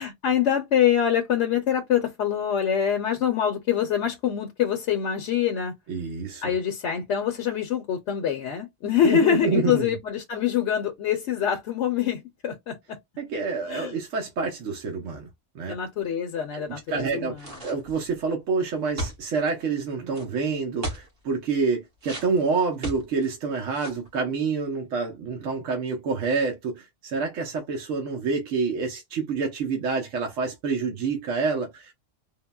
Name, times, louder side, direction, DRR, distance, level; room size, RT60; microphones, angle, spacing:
voice 1, 0.0-5.7 6.4-13.0 13.7-13.9 15.7-17.5, left 9 dB, 65° left, 0.9 m, -25 dB
voice 2, 5.9-6.5 9.0-9.9 13.2-15.3 15.5-15.7 16.5-17.3 17.6-31.9, right 4 dB, 75° right, 1.2 m, -27 dB
sound 1, 17.4-18.1 19.0-19.5 20.1-20.3 20.8-21.1 22.0-23.3 23.7-24.1, right 1 dB, 40° right, 1.5 m, -35 dB
3.6 x 2.1 x 2.2 m
omnidirectional pair, 1.4 m